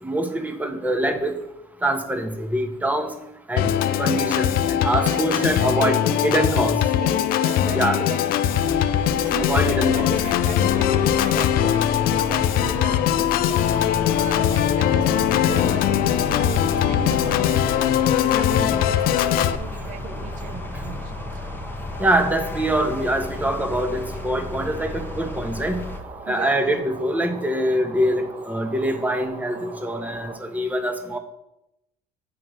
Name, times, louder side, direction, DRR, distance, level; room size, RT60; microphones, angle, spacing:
voice 1, 0.0-1.3 1.8-3.1 3.5-3.7 4.0-6.0 6.2-6.8 7.7-8.0 9.4-10.1 13.7-13.8 18.5-18.7 20.7-20.8 22.0-25.8 26.3-31.2, right 1 dB, 10° right, 6 dB, 1.1 m, -24 dB
Organ, 3.6-19.6, left 10 dB, 70° left, 0.5 m, -21 dB
voice 2, 4.8-8.2 9.1-13.7 14.1-17.8 18.2-21.1 26.2-26.8, right 8 dB, 60° right, 10 dB, 0.9 m, -37 dB
sound 1, 8.5-26.0, left 2 dB, 15° left, 0.9 m, -34 dB
sound 2, 13.6-30.4, right 4 dB, 35° right, 1.1 m, -41 dB
9.0 x 3.8 x 6.3 m, 0.87 s
cardioid pair, 115°, 16 cm